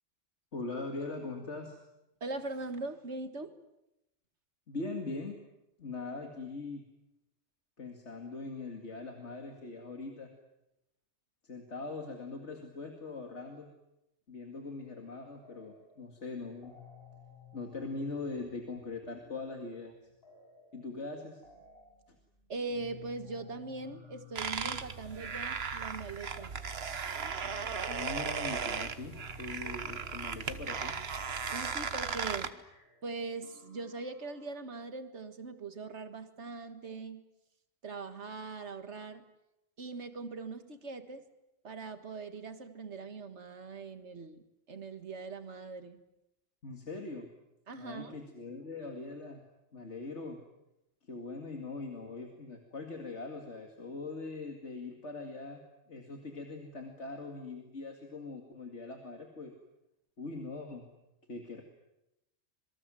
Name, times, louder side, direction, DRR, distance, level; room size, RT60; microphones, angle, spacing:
voice 1, 0.5-1.8 4.7-5.4 5.8-6.8 7.8-10.3 11.4-13.7 14.3-16.8 17.5-19.9 20.7-21.4 27.9-31.0 46.6-47.3 47.8-49.4 49.7-50.4 51.0-55.6 55.9-59.5 60.2-60.8 61.3-61.6, left 3 dB, 85° left, 3 dB, 2.7 m, -41 dB
voice 2, 2.2-3.6 22.5-26.5 31.5-32.6 33.0-37.2 37.8-39.3 39.8-41.2 41.6-46.0 47.7-48.2, right 3 dB, 80° right, 9 dB, 2.0 m, -41 dB
sound 1, 15.4-16.0 16.3-34.6, left 6 dB, 60° left, 7.2 m, -57 dB
sound 2, 24.4-32.5, right 6 dB, 65° right, 1.4 m, -36 dB
27.0 x 23.0 x 7.7 m, 0.88 s
omnidirectional pair, 1.1 m